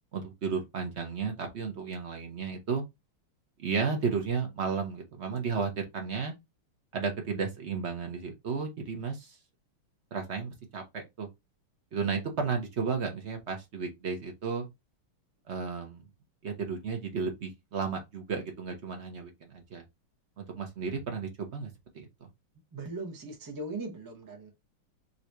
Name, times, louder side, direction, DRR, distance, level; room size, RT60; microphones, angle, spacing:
voice 1, 0.1-2.8 3.6-6.3 6.9-9.3 10.1-11.3 11.9-14.7 15.5-16.0 16.4-19.8 20.4-21.7 21.9-22.1, right 5 dB, 55° right, 0.7 m, -33 dB
voice 2, 22.7-24.5, right 2 dB, 25° right, 0.4 m, -39 dB
3.9 x 2.7 x 4.5 m
omnidirectional pair, 2.4 m